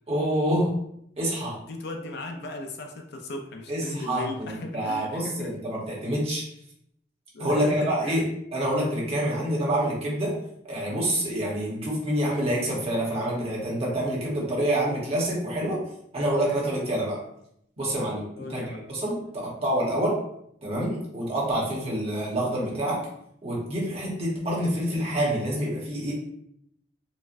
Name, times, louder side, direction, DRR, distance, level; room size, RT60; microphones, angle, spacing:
voice 1, 0.1-0.7 1.2-1.6 3.7-6.4 7.4-8.2 8.5-10.4 10.6-15.8 16.1-17.2 17.8-20.1 20.6-23.0 23.4-26.1, right 1 dB, 30° right, -4 dB, 1.0 m, -27 dB
voice 2, 1.6-5.5 7.3-8.2 18.4-18.9, left 2 dB, 60° left, 3 dB, 0.5 m, -37 dB
4.1 x 2.2 x 2.5 m, 0.74 s
head